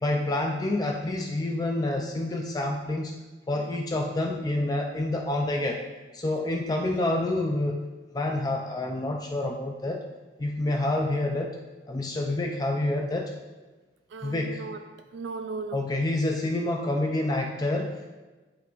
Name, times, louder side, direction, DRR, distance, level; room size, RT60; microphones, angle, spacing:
voice 1, 0.0-3.1 3.5-5.8 6.1-7.8 8.1-10.0 10.4-11.6 11.9-13.3 14.2-14.6 15.7-18.1, left 2 dB, 20° left, 2 dB, 0.4 m, -28 dB
voice 2, 14.1-15.9, right 4 dB, 85° right, 7 dB, 0.3 m, -37 dB
9.2 x 5.7 x 2.5 m, 1.2 s
head